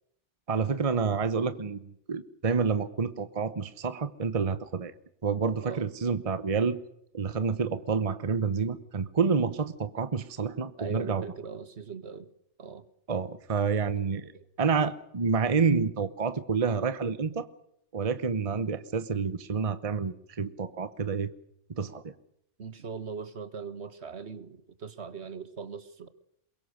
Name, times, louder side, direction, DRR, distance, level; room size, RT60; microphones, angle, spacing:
voice 1, 0.5-4.9 5.2-6.8 7.1-11.2 13.1-14.3 14.6-17.5 17.9-21.3 21.8-22.1, right 5 dB, 30° right, 13 dB, 1.0 m, -28 dB
voice 2, 10.8-12.3 12.6-12.8 14.3-14.4 22.6-26.1, right 5 dB, 60° right, 13 dB, 1.7 m, -40 dB
22.5 x 22.5 x 6.5 m, 0.75 s
omnidirectional pair, 1.2 m